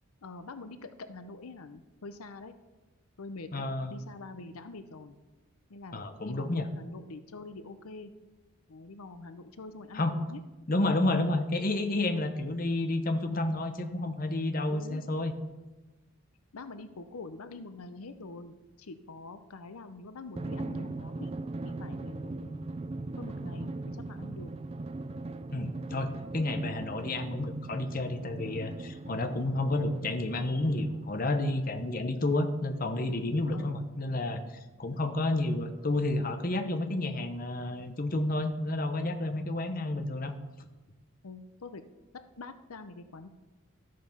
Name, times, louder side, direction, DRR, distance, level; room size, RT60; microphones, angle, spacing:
voice 1, 0.2-2.5 3.2-5.2 5.7-6.0 6.2-8.1 8.7-10.4 14.7-15.0 16.5-21.3 21.6-22.7 23.2-24.5 33.5-33.8 41.2-41.8 42.4-43.3, left 3 dB, 85° left, 10 dB, 0.7 m, -45 dB
voice 2, 3.5-4.0 5.9-6.7 9.9-10.1 10.7-15.3 25.5-34.4 34.8-40.3, left 2 dB, 40° left, 7 dB, 0.9 m, -30 dB
Drum, 20.4-31.4, right 2 dB, 30° right, 0.4 m, -39 dB
13.0 x 7.6 x 5.6 m, 1.1 s
head